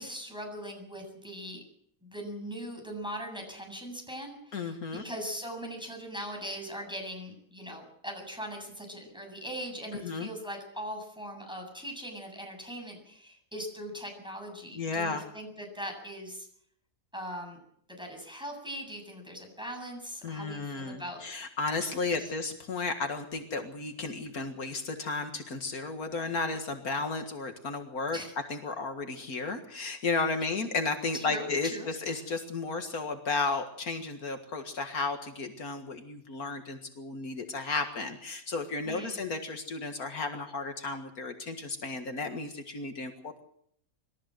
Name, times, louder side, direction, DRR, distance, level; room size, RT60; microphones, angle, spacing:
voice 1, 0.0-1.6 2.0-16.5 17.1-17.6 17.9-21.2 22.0-22.3 28.1-28.3 31.1-31.9 32.1-32.3 38.8-39.2, equal, 5° right, 2 dB, 7.7 m, -40 dB
voice 2, 4.5-5.1 10.0-10.3 14.8-15.2 20.2-28.2 28.5-43.4, left 4 dB, 75° left, 6 dB, 2.2 m, -33 dB
26.0 x 14.0 x 7.8 m, 0.67 s
omnidirectional pair, 1.6 m